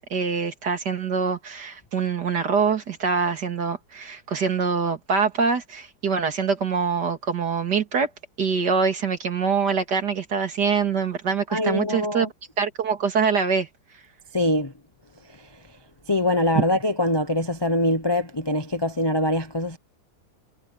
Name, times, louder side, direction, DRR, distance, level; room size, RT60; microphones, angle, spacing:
voice 1, 0.0-8.1 8.4-12.3 12.6-13.7 16.6-16.7, right 5 dB, 60° right, 2.8 m, -24 dB
voice 2, 11.5-12.3 14.3-14.7 16.1-19.8, left 1 dB, 30° left, 0.5 m, -23 dB
omnidirectional pair, 2.1 m